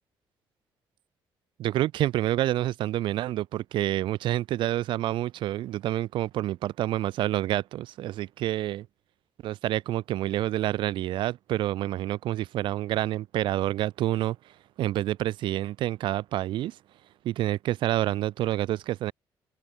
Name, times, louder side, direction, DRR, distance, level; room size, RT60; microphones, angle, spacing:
voice 1, 1.6-8.9 9.4-14.4 14.8-16.8 17.2-19.1, right 14 dB, 75° right, 2.8 m, -28 dB
open air
cardioid pair, 140°, 8 cm